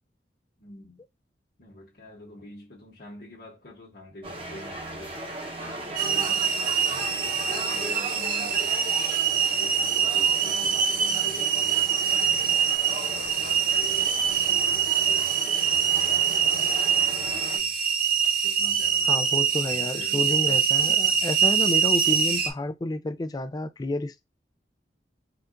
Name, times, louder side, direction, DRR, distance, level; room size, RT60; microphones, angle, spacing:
voice 1, 0.6-1.0 1.6-5.2 5.6-8.8 9.2-12.6 13.0-17.8 18.4-21.2 22.1-22.4, left 1 dB, 60° left, 1.4 m, -46 dB
sound 1, 4.2-17.6, right 1 dB, 30° right, 0.9 m, -38 dB
sound 2, 6.0-22.5, right 7 dB, 50° right, 0.6 m, -24 dB
voice 2, 19.1-24.2, left 2 dB, 20° left, 0.3 m, -30 dB
4.3 x 2.4 x 2.5 m
head